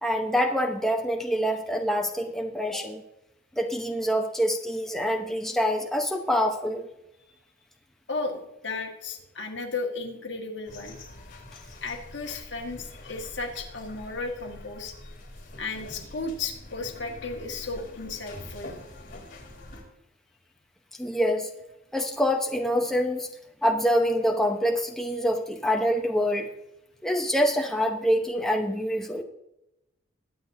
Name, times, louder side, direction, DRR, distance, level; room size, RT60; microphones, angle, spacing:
voice 1, 0.0-3.0 3.5-6.9 21.0-21.5 21.9-23.3 23.6-26.5 27.0-29.2, equal, ahead, 2 dB, 0.8 m, -25 dB
voice 2, 8.1-11.0 11.8-15.1 15.6-18.7, left 3 dB, 65° left, 2 dB, 1.7 m, -34 dB
sound 1, 10.7-19.8, left 1 dB, 50° left, 3.8 m, -45 dB
22.0 x 8.4 x 2.7 m, 0.89 s
head